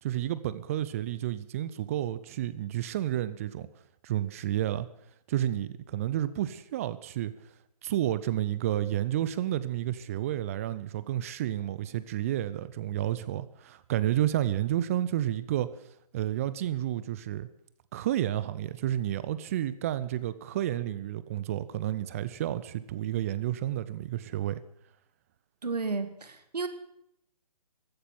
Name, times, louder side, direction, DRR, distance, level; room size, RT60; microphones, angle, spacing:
voice 1, 0.0-3.7 4.0-4.9 5.3-7.3 7.8-15.7 16.1-17.5 17.9-24.6, right 12 dB, 20° right, 16 dB, 0.5 m, -30 dB
voice 2, 25.6-26.7, right 4 dB, 75° right, 9 dB, 2.3 m, -32 dB
14.5 x 10.0 x 9.4 m, 0.76 s
figure-of-eight pair, 145°, 20 cm